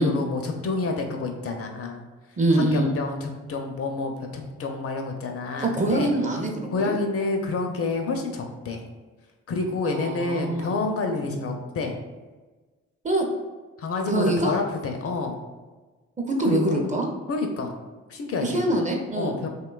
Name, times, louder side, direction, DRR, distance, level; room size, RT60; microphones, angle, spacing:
voice 1, 0.0-2.0 2.6-6.1 6.7-8.8 9.5-12.0 13.8-15.4 16.4-16.8 17.3-17.8 18.1-18.6 19.2-19.5, left 3 dB, 45° left, 3 dB, 0.4 m, -28 dB
voice 2, 2.4-2.9 5.6-6.9 9.8-10.7 13.0-13.2 14.1-14.5 16.2-17.1 18.4-19.4, right 1 dB, 25° right, 1 dB, 0.5 m, -24 dB
2.7 x 2.2 x 2.3 m, 1.3 s
supercardioid pair, 45°, 32 cm